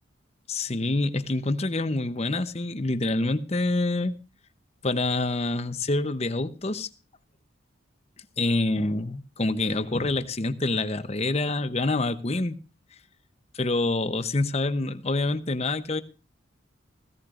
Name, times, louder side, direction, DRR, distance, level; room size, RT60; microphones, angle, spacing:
voice 1, 0.5-4.1 4.8-6.9 8.4-12.6 13.5-16.0, left 2 dB, 30° left, 0.8 m, -26 dB
16.5 x 16.0 x 2.5 m
head